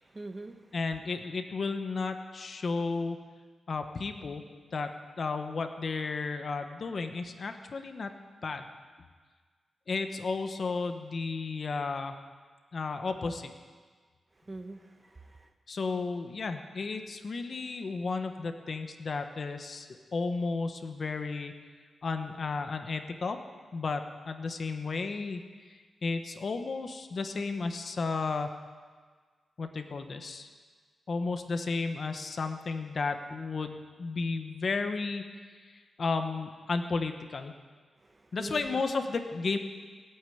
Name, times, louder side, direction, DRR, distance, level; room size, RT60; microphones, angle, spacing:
voice 1, 0.1-0.5 14.5-15.5 38.1-38.8, right 2 dB, 20° right, 6 dB, 1.0 m, -43 dB
voice 2, 0.7-3.2 3.7-8.1 8.4-8.7 9.9-12.2 12.7-13.5 15.7-21.5 22.0-23.4 23.7-28.5 29.6-30.5 31.1-35.2 35.7-37.5 38.3-39.6, left 4 dB, 45° left, 7 dB, 1.1 m, -33 dB
17.5 x 8.9 x 9.3 m, 1.5 s
wide cardioid pair, 145°, 0 cm